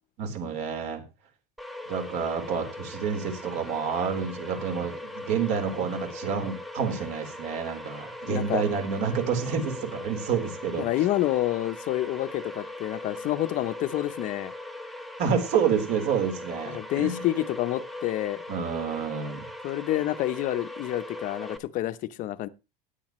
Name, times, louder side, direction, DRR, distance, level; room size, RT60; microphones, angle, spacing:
voice 1, 0.2-1.0 1.9-10.8 15.2-17.3 18.5-19.4, right 6 dB, 55° right, 4.1 m, -28 dB
sound 1, 1.6-21.6, left 1 dB, ahead, 1.1 m, -40 dB
voice 2, 8.3-8.6 10.8-14.5 16.7-18.4 19.6-22.5, left 14 dB, 40° left, 0.8 m, -28 dB
16.5 x 10.0 x 3.1 m
cardioid pair, 155°, 21 cm